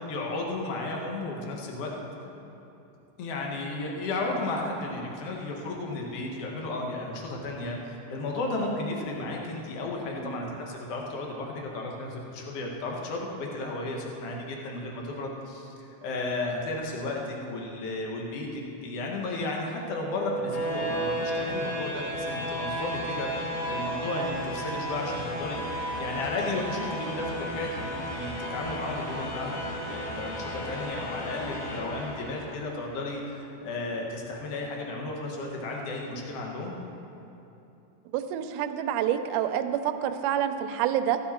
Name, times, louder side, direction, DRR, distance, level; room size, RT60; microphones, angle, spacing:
voice 1, 0.1-2.0 3.2-25.6 26.0-29.6 29.9-36.7, left 2 dB, 55° left, 0 dB, 2.0 m, -34 dB
voice 2, 10.1-10.5 38.1-41.2, right 10 dB, 80° right, 7 dB, 2.0 m, -28 dB
sound 1, 19.8-32.8, equal, 70° left, 2.8 m, -33 dB
15.0 x 10.0 x 4.4 m, 2.9 s
omnidirectional pair, 4.0 m